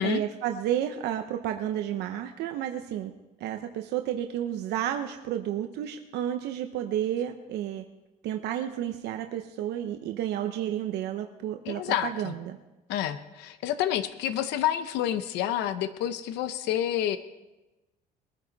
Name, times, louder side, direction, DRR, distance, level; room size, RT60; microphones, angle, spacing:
voice 1, 0.0-3.1 3.4-7.8 8.2-12.6, right 11 dB, 80° right, 5 dB, 0.9 m, -31 dB
voice 2, 11.6-12.3 12.9-17.2, left 11 dB, 90° left, 11 dB, 0.8 m, -29 dB
21.5 x 10.0 x 4.1 m, 1.0 s
cardioid pair, 110°, 17 cm